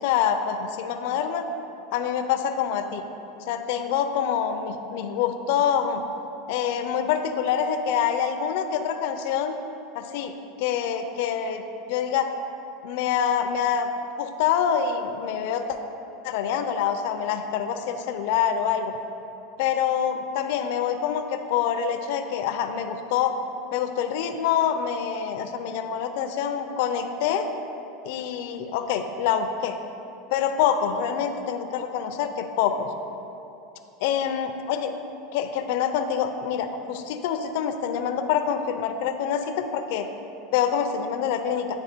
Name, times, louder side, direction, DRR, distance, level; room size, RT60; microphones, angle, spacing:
voice 1, 0.0-1.5 1.9-3.0 3.5-6.0 6.5-9.6 9.9-10.3 10.6-12.3 12.8-13.9 14.2-15.8 16.2-18.9 19.6-23.4 23.7-27.5 28.0-29.8 30.3-32.9 34.0-34.9 35.3-40.1 40.5-41.7, left 8 dB, 65° left, 7 dB, 0.4 m, -26 dB
8.9 x 3.3 x 4.3 m, 2.9 s
supercardioid pair, 135°, 0 cm